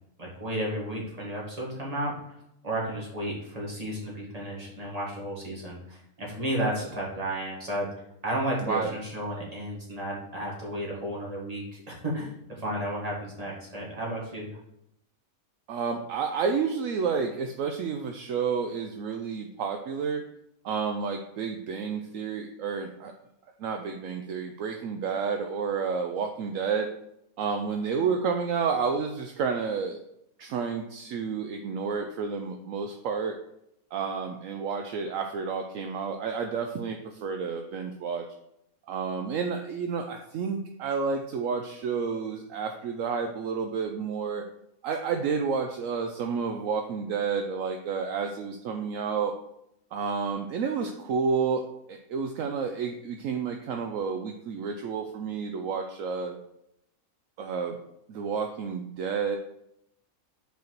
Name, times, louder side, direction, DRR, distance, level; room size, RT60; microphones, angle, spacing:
voice 1, 0.2-2.4 2.6-7.9 8.2-14.5, right 1 dB, 25° right, -4 dB, 1.9 m, -33 dB
voice 2, 15.7-20.2 20.6-23.1 23.6-26.9 27.4-30.0 30.4-33.4 33.9-38.3 38.9-44.4 44.8-49.3 49.9-51.6 51.9-56.4 57.4-57.8 58.1-59.4, right 5 dB, 70° right, 5 dB, 0.9 m, -30 dB
5.2 x 4.6 x 5.9 m, 0.80 s
omnidirectional pair, 1.6 m